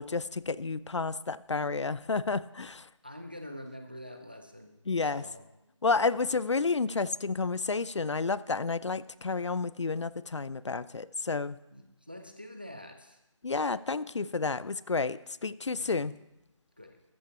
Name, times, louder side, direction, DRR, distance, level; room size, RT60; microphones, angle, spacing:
voice 1, 0.0-2.9 4.9-5.2 5.8-11.6 13.4-16.1, left 4 dB, 65° left, 18 dB, 0.4 m, -30 dB
voice 2, 3.0-5.5 5.8-6.4 11.7-13.2 15.8-16.1 16.8-17.0, left 1 dB, 20° right, 6 dB, 0.5 m, -46 dB
13.5 x 5.7 x 6.9 m, 0.90 s
figure-of-eight pair, 175°, 16 cm